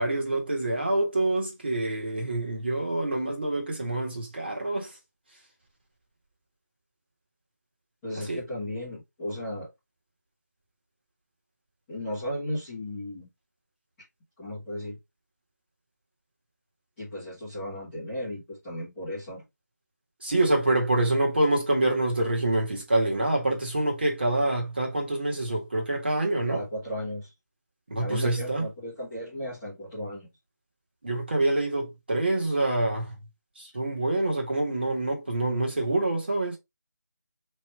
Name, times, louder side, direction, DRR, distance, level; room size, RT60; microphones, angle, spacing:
voice 1, 0.0-5.0 8.1-8.4 20.2-26.6 27.9-28.7 31.0-33.2 33.5-36.6, right 2 dB, 35° right, 1.7 m, -26 dB
voice 2, 8.0-9.7 11.9-13.3 14.4-15.0 17.0-19.4 26.5-27.3 28.0-30.3, left 1 dB, 5° left, 1.2 m, -35 dB
5.0 x 3.3 x 3.1 m
figure-of-eight pair, 180°, 10 cm